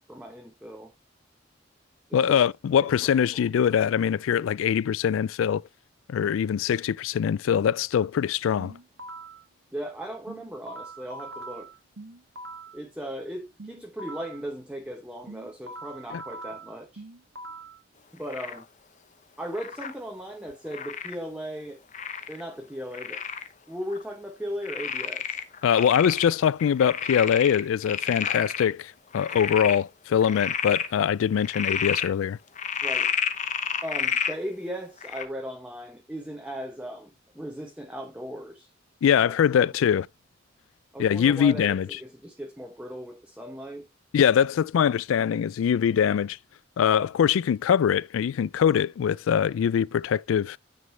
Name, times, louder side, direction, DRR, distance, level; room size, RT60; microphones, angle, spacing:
voice 1, 0.1-0.9 2.1-2.4 3.0-3.4 9.7-11.7 12.7-17.0 18.1-18.7 19.4-21.8 22.3-23.2 23.7-25.4 32.8-33.1 33.8-38.7 39.1-39.7 40.9-43.9, equal, 5° right, 0.9 m, -37 dB
voice 2, 2.1-5.6 6.1-8.7 16.1-16.2 25.6-32.4 39.0-40.1 41.0-41.9 44.1-46.4 46.8-50.6, left 8 dB, 90° left, 0.3 m, -23 dB
sound 1, 8.6-9.4 10.3-12.8 13.6-14.4 15.3-17.8, right 2 dB, 80° right, 1.5 m, -42 dB
Frog, 18.3-18.6 19.5-19.9 20.7-21.2 21.9-22.4 22.9-23.5 23.9-24.0 24.6-26.3 26.6-28.6 29.1-29.8 30.2-30.9 31.4-32.1 32.6-34.4 35.0-35.2, left 7 dB, 35° left, 0.8 m, -30 dB
9.6 x 5.2 x 3.2 m
head